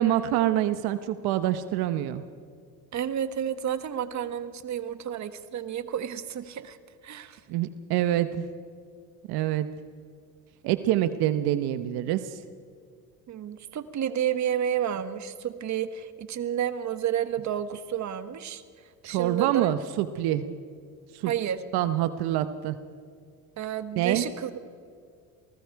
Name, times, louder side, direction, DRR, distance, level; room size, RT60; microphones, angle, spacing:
voice 1, 0.0-2.2 7.5-8.5 9.3-9.7 10.6-12.4 19.0-20.6 21.1-21.3 21.7-22.8 24.0-24.2, right 12 dB, 80° right, 11 dB, 1.0 m, -26 dB
voice 2, 2.9-6.8 7.0-7.4 13.3-18.6 19.0-19.7 21.2-21.6 23.6-24.6, right 9 dB, 50° right, 11 dB, 1.4 m, -30 dB
28.5 x 19.5 x 4.7 m, 2.2 s
cardioid pair, 110°, 38 cm